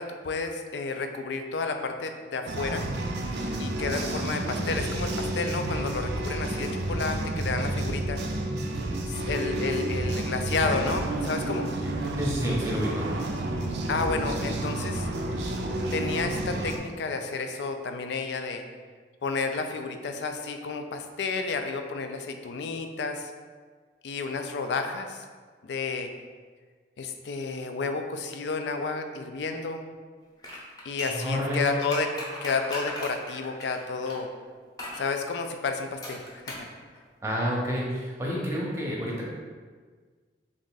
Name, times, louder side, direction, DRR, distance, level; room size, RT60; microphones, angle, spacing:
voice 1, 0.0-2.8 3.6-8.2 9.1-11.7 13.9-15.1 15.9-18.6 19.2-23.3 24.0-25.2 25.6-26.1 27.0-29.9 30.8-32.1 32.4-34.3 35.0-36.7, left 4 dB, 75° left, 6 dB, 0.4 m, -31 dB
sound 1, 2.5-16.8, right 1 dB, 75° right, 0.4 m, -30 dB
voice 2, 12.2-13.1 31.1-31.7 37.2-39.3, equal, 15° right, -4 dB, 0.7 m, -29 dB
sound 2, 30.4-34.2 34.8-35.1 36.0-36.7 37.0-37.1, left 1 dB, 20° left, 0.7 m, -38 dB
3.6 x 2.5 x 3.8 m, 1.5 s
head